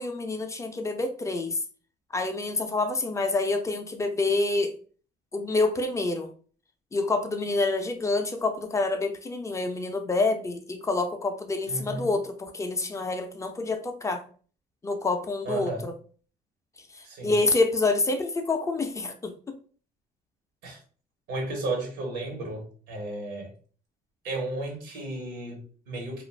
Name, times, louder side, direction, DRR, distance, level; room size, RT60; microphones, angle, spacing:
voice 1, 0.0-1.6 2.1-4.8 5.3-6.3 6.9-14.2 14.8-15.9 16.9-19.5, left 3 dB, 15° left, 5 dB, 0.4 m, -27 dB
voice 2, 11.7-12.1 15.4-15.9 17.0-17.3 20.6-20.8 21.3-23.5 24.2-26.2, right 2 dB, 90° right, 1 dB, 1.1 m, -33 dB
2.4 x 2.3 x 3.2 m, 0.42 s
cardioid pair, 110°, 17 cm